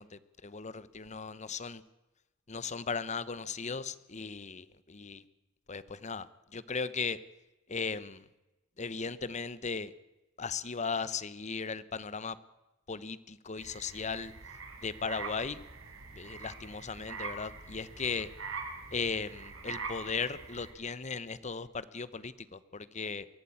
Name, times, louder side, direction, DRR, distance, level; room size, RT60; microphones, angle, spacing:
voice 1, 0.0-1.8 2.5-5.2 5.7-7.2 7.7-8.2 8.8-9.9 10.4-12.4 12.9-14.3 14.8-15.6 16.1-18.3 18.9-23.3, left 5 dB, 35° left, 16 dB, 1.0 m, -37 dB
sound 1, 13.6-20.7, right 4 dB, 80° right, 4.2 m, -44 dB
23.0 x 14.5 x 8.7 m, 1.0 s
head